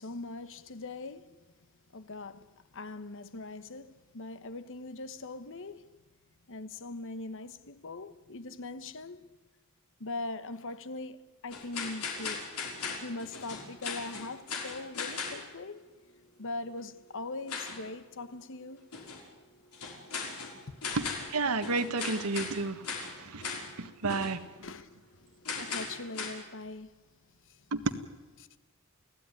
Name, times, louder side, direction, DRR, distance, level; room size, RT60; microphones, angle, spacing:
voice 1, 0.0-1.5 1.9-6.0 6.5-9.3 10.0-12.5 13.0-15.8 16.4-18.8 20.7-20.8 24.6-25.2 25.6-27.0 27.4-27.6 28.4-28.6, left 2 dB, 60° left, 1.2 m, -41 dB
sound 1, 11.5-15.4 17.5-17.8 18.9-19.2 19.7-21.4 21.6-22.6 22.8-23.2 23.4-23.7 24.1-24.4 25.5-26.3, left 5 dB, 85° left, 5.6 m, -38 dB
voice 2, 20.9-23.5 23.8-24.4 27.7-27.8, right 3 dB, 80° right, 1.6 m, -32 dB
29.0 x 17.0 x 9.9 m
head